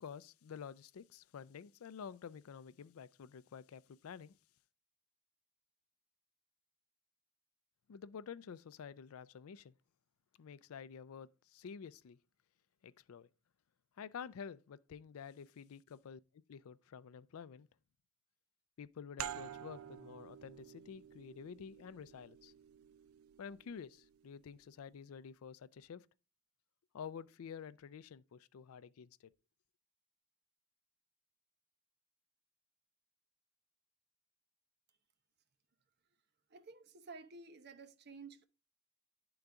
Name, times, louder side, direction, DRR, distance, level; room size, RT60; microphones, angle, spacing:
voice 1, 0.0-4.3 7.9-9.7 10.4-12.2 12.8-13.3 14.0-17.7 18.8-22.5 23.4-26.1 26.9-29.3, left 7 dB, 90° left, 0.4 m, -50 dB
sound 1, 19.2-24.5, right 10 dB, 85° right, 0.4 m, -50 dB
voice 2, 36.5-38.4, right 4 dB, 50° right, 0.8 m, -53 dB
11.0 x 3.9 x 3.4 m
head